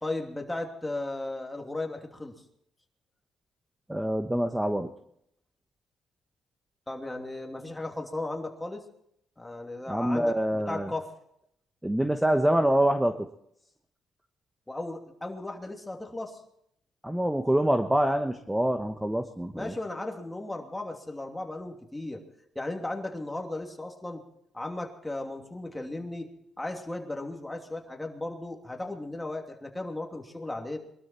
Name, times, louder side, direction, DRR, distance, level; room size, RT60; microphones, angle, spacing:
voice 1, 0.0-2.3 6.9-8.8 9.4-11.1 14.7-16.4 19.5-22.2 22.5-24.2 24.5-26.3 26.6-30.8, left 2 dB, 10° left, 2 dB, 2.9 m, -36 dB
voice 2, 3.9-4.9 9.9-10.9 11.8-13.1 17.0-19.7, right 1 dB, 5° right, 7 dB, 1.1 m, -25 dB
22.5 x 12.5 x 4.4 m, 0.72 s
cardioid pair, 90°, 0 cm